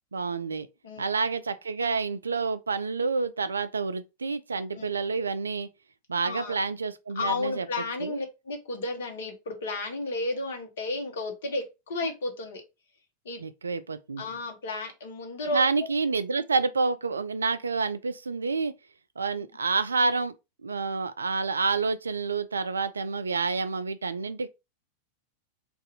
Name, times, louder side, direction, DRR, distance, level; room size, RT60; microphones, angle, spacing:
voice 1, 0.1-0.7 1.0-5.7 6.1-7.7 8.0-8.2 13.4-14.3 15.5-18.7 19.2-20.3 20.6-24.5, right 4 dB, 75° right, 0.3 m, -28 dB
voice 2, 6.2-6.6 7.1-12.6 13.2-13.4 14.2-15.6, left 2 dB, 60° left, 1.0 m, -32 dB
2.6 x 2.3 x 4.0 m
figure-of-eight pair, 90°, 0 cm